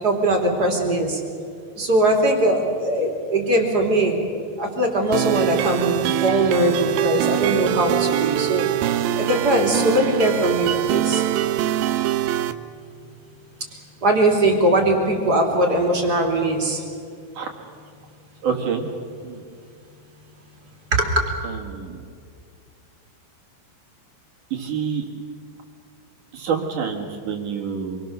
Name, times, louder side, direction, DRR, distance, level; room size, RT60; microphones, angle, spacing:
voice 1, 0.0-1.2 1.8-4.2 4.6-8.7 9.1-11.2 14.0-16.8 20.9-21.2, right 1 dB, 25° right, 1 dB, 3.0 m, -20 dB
sound 1, 5.1-12.5, right 13 dB, 85° right, 2.0 m, -23 dB
voice 2, 18.4-18.9 19.2-19.4 21.4-22.0 24.5-25.0 26.3-28.0, right 6 dB, 55° right, 1 dB, 2.9 m, -27 dB
27.0 x 23.5 x 6.8 m, 2.2 s
omnidirectional pair, 5.1 m